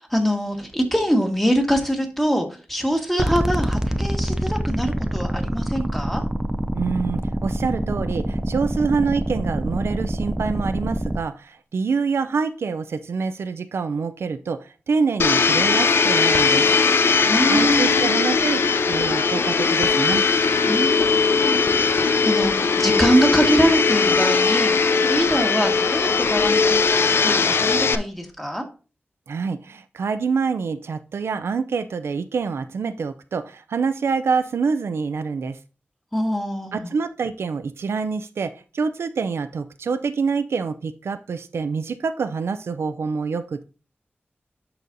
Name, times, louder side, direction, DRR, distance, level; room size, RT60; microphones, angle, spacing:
voice 1, 0.1-6.2 17.2-18.1 20.7-28.6 36.1-36.9, equal, 5° left, 1.6 m, -24 dB
sound 1, 3.2-11.2, right 1 dB, 15° right, 0.5 m, -25 dB
voice 2, 6.7-16.7 17.5-20.2 29.3-35.6 36.7-43.6, right 5 dB, 90° right, 0.4 m, -26 dB
Domestic sounds home sounds, 15.2-27.9, left 5 dB, 70° left, 0.5 m, -19 dB
11.0 x 4.1 x 2.6 m
wide cardioid pair, 90°, 4 cm